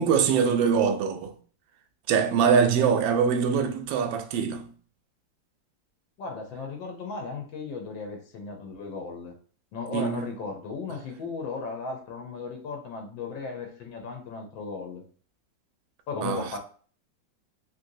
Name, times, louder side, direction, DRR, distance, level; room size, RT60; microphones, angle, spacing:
voice 1, 0.0-1.3 2.1-4.7 9.9-10.3 16.2-16.5, right 6 dB, 85° right, 1.3 m, -23 dB
voice 2, 6.2-9.3 9.7-15.0 16.1-16.6, left 4 dB, 90° left, 1.5 m, -36 dB
3.3 x 2.7 x 2.6 m
omnidirectional pair, 2.0 m